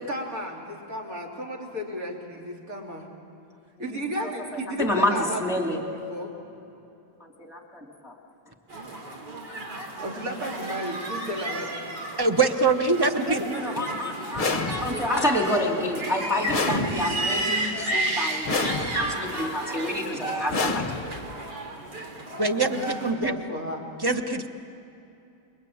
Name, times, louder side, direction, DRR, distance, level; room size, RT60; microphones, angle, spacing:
voice 1, 0.0-3.1 3.8-5.4 5.7-5.8 6.1-6.3 10.0-12.0 13.1-13.7 22.5-23.9, equal, 50° right, -1 dB, 3.9 m, -33 dB
voice 2, 4.2-5.1 5.4-5.8 7.2-8.1 13.4-21.0, left 1 dB, ahead, 1 dB, 2.9 m, -29 dB
sound 1, 8.7-23.1, right 2 dB, 65° right, 3.8 m, -32 dB
voice 3, 12.2-13.4 22.4-23.3 24.0-24.5, right 3 dB, 20° right, 7 dB, 0.7 m, -23 dB
sound 2, 14.3-15.2 16.5-17.4 18.4-19.3 20.5-21.4, left 3 dB, 30° left, 1.1 m, -29 dB
28.0 x 23.0 x 8.7 m, 2.7 s
omnidirectional pair, 2.0 m